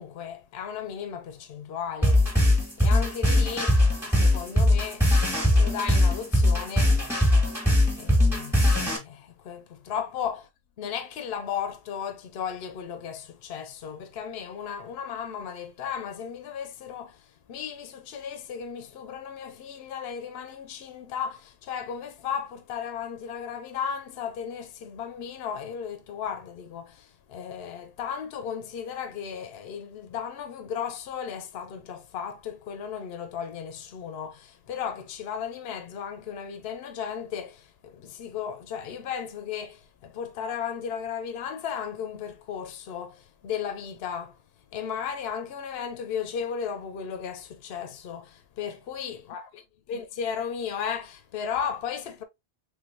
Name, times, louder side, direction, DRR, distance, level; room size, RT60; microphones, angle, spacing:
voice 1, 0.0-2.3 2.8-7.0 7.9-10.5 10.8-44.4 44.7-49.4 49.9-52.2, left 7 dB, 70° left, 0.8 m, -35 dB
sound 1, 2.0-9.0, left 1 dB, ahead, 1.4 m, -21 dB
3.4 x 3.4 x 2.5 m
omnidirectional pair, 1.1 m